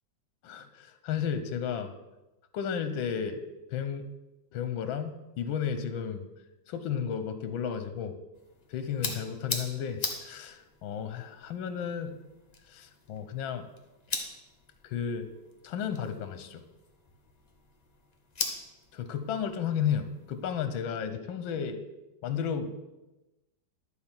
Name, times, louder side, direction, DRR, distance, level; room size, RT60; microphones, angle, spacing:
voice 1, 0.4-1.9 2.5-3.4 3.7-4.1 4.5-6.2 6.7-8.2 8.7-12.1 12.7-13.7 14.8-15.3 15.6-16.6 18.9-21.8 22.2-22.8, left 7 dB, 80° left, 10 dB, 1.6 m, -33 dB
sound 1, 8.3-20.6, left 3 dB, 25° left, 1.0 m, -41 dB
11.5 x 4.5 x 7.1 m, 1.0 s
omnidirectional pair, 2.1 m